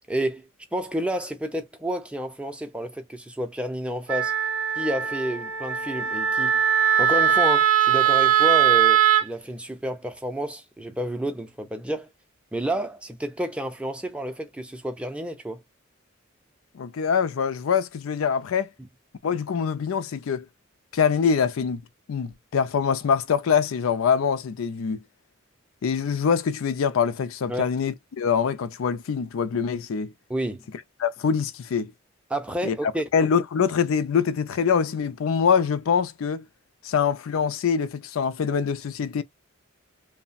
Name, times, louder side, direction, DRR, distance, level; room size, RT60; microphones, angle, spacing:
voice 1, 0.1-4.3 4.8-6.6 7.0-12.1 12.5-15.6 27.5-27.7 30.3-30.6 32.3-33.1, equal, 5° right, 0.4 m, -30 dB
Wind instrument woodwind instrument, 4.1-9.3, right 9 dB, 80° right, 0.7 m, -20 dB
voice 2, 16.7-18.7 19.2-20.5 20.9-21.8 22.1-25.0 25.8-30.1 31.0-31.9 32.6-32.8 33.1-36.5 36.8-39.2, left 6 dB, 80° left, 0.4 m, -24 dB
3.1 x 2.1 x 2.5 m
head